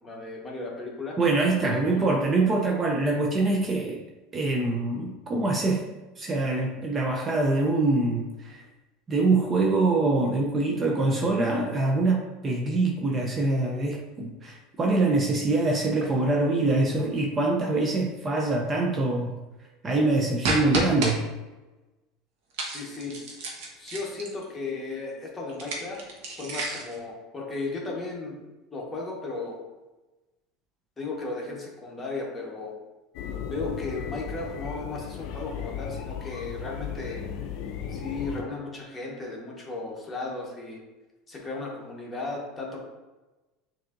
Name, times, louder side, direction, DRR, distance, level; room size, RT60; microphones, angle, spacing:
voice 1, 0.0-1.2 1.6-2.1 22.7-23.2 23.8-26.0 26.4-28.4 28.7-29.6 31.0-32.8 33.4-37.3 37.9-40.8 41.3-42.8, left 3 dB, 20° left, -2 dB, 1.1 m, -35 dB
voice 2, 1.2-4.0 4.3-5.8 6.2-8.6 9.1-19.3 19.8-21.3, right 2 dB, 25° right, -1 dB, 0.5 m, -24 dB
sound 1, 20.4-21.1 22.5-24.4 25.5-27.0, right 2 dB, 70° right, 1.0 m, -30 dB
sound 2, 33.1-38.4, left 8 dB, 60° left, 0.4 m, -35 dB
6.4 x 2.7 x 2.5 m, 1.1 s
supercardioid pair, 125°, 0 cm